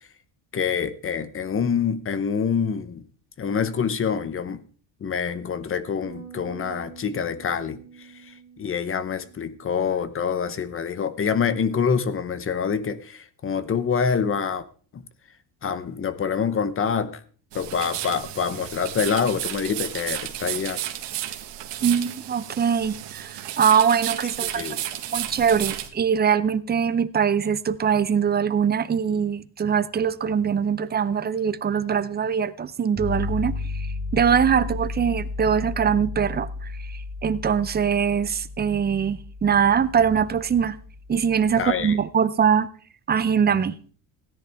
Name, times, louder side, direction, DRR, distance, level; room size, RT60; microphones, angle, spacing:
voice 1, 0.5-3.0 3.4-4.6 5.0-14.6 14.9-15.0 15.6-17.2 17.5-20.8 24.4-24.8 41.6-42.0, left 6 dB, 30° left, 0.9 m, -26 dB
Bass guitar, 6.0-12.3, right 7 dB, 45° left, 5.2 m, -48 dB
sound 1, 17.5-25.9, right 13 dB, 75° right, 1.7 m, -33 dB
voice 2, 21.8-24.6 25.1-36.7 37.2-40.8 41.1-42.7 43.1-43.7, right 7 dB, 25° right, 0.5 m, -22 dB
sound 2, 33.0-41.9, left 3 dB, ahead, 2.1 m, -34 dB
17.0 x 10.5 x 3.5 m
cardioid pair, 140°, 42 cm